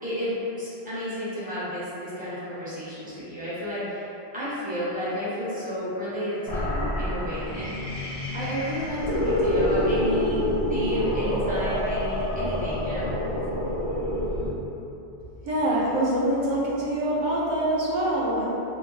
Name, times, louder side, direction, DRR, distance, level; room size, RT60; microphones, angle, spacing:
voice 1, 0.0-7.7 8.3-10.4 10.7-13.1, equal, 10° right, -13 dB, 0.8 m, -32 dB
sound 1, 6.5-14.5, left 1 dB, 50° left, 0.5 m, -27 dB
voice 2, 15.4-18.5, right 1 dB, 55° right, -6 dB, 0.6 m, -25 dB
2.6 x 2.3 x 3.0 m, 2.9 s
omnidirectional pair, 1.1 m